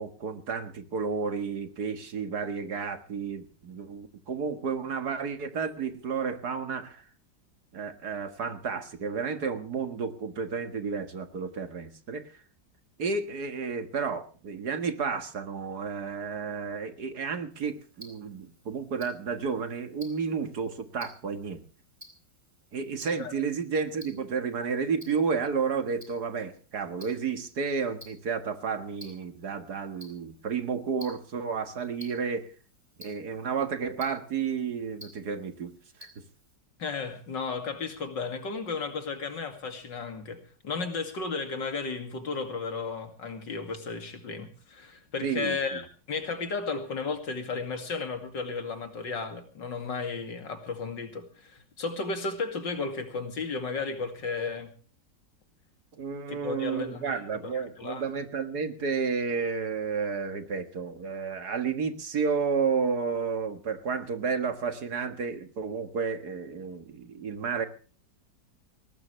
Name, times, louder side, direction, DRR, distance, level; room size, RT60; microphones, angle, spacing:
voice 1, 0.0-7.0 7.7-12.3 13.0-21.6 22.7-32.5 33.0-35.7 36.0-36.1 45.2-45.8 55.9-67.7, right 5 dB, 60° right, 2.2 m, -31 dB
Tick-tock, 17.5-36.6, left 1 dB, 10° right, 4.2 m, -55 dB
voice 2, 36.8-45.8 46.1-54.7 56.3-58.1, left 4 dB, 75° left, 3.0 m, -34 dB
20.5 x 18.5 x 3.3 m
omnidirectional pair, 2.0 m